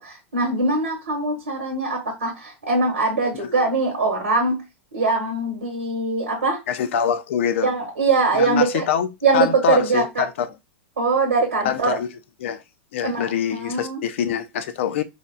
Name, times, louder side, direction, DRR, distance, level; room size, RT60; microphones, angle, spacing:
voice 1, 0.0-4.6 4.9-6.6 7.6-8.9 9.2-10.3 11.0-12.0 13.0-14.0, right 3 dB, 80° right, 1.2 m, -22 dB
voice 2, 6.7-7.7 8.3-9.1 9.3-10.5 11.6-12.1 12.4-12.6 12.9-15.0, left 8 dB, 65° left, 0.5 m, -24 dB
4.2 x 2.3 x 2.2 m
hypercardioid pair, 100°, 7 cm